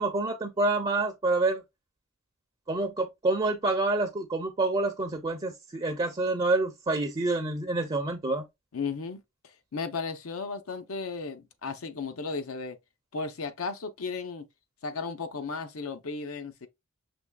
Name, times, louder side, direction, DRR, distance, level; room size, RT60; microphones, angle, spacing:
voice 1, 0.0-1.6 2.7-8.4, right 2 dB, 25° right, 0.5 m, -27 dB
voice 2, 8.7-9.2 9.7-12.8 13.1-14.5 14.8-16.7, left 4 dB, 75° left, 0.7 m, -35 dB
6.1 x 3.1 x 2.2 m
head